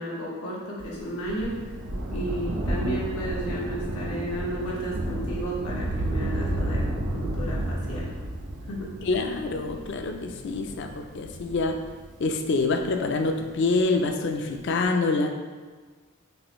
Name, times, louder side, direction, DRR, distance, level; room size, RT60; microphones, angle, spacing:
voice 1, 0.0-1.5 2.1-8.1 8.7-8.9, right 1 dB, 90° left, -4 dB, 1.1 m, -33 dB
Thunder, 0.8-13.7 14.6-14.7, right 1 dB, 80° right, 0.6 m, -32 dB
voice 2, 9.0-11.8 12.2-15.3, left 3 dB, 50° left, 5 dB, 0.4 m, -26 dB
6.2 x 2.6 x 3.0 m, 1.4 s
head